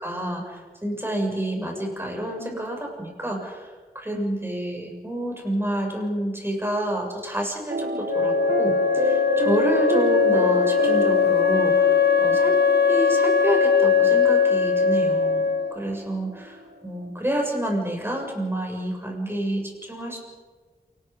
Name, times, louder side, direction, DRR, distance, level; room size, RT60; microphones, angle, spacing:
voice 1, 0.0-12.6 12.9-20.2, right 1 dB, 15° right, 0 dB, 7.2 m, -29 dB
sound 1, 7.7-17.1, right 1 dB, 80° right, 1.7 m, -30 dB
Wind instrument woodwind instrument, 8.1-15.8, left 6 dB, 85° left, 1.4 m, -20 dB
28.0 x 19.5 x 5.4 m, 1.5 s
wide cardioid pair, 50°, 16 cm